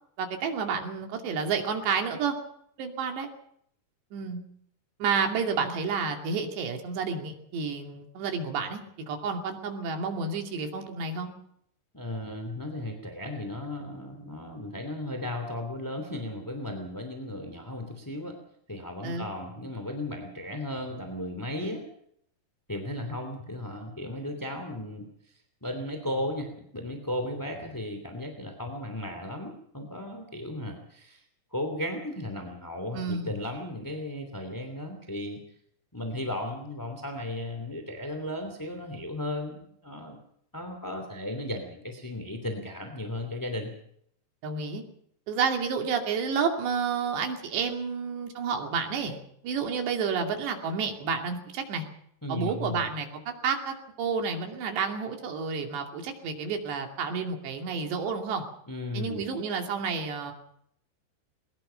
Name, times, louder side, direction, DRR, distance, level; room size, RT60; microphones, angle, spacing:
voice 1, 0.2-2.4 2.8-3.3 4.1-4.4 5.0-8.8 9.1-11.3 19.0-19.3 32.9-33.3 44.4-44.8 45.3-49.2 49.4-51.8 52.3-58.4 58.9-60.3, right 5 dB, 90° right, 3 dB, 4.8 m, -30 dB
voice 2, 11.9-18.4 18.7-21.8 22.7-31.2 31.5-35.4 35.9-40.2 40.5-43.7 52.2-52.9 58.7-59.2, left 1 dB, 5° left, 5 dB, 1.7 m, -35 dB
22.5 x 20.5 x 5.8 m, 0.69 s
omnidirectional pair, 4.8 m